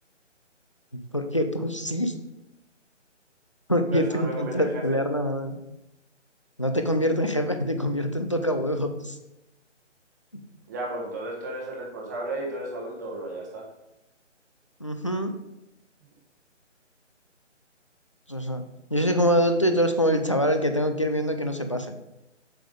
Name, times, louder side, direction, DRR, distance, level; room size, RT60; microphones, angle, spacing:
voice 1, 1.1-2.1 3.7-5.5 6.6-9.2 14.8-15.3 18.3-18.6 18.9-21.9, equal, 25° left, 6 dB, 0.4 m, -25 dB
voice 2, 3.9-5.0 10.7-13.7, right 2 dB, 15° right, -1 dB, 1.1 m, -34 dB
7.5 x 7.1 x 5.0 m, 0.94 s
figure-of-eight pair, 160°, 37 cm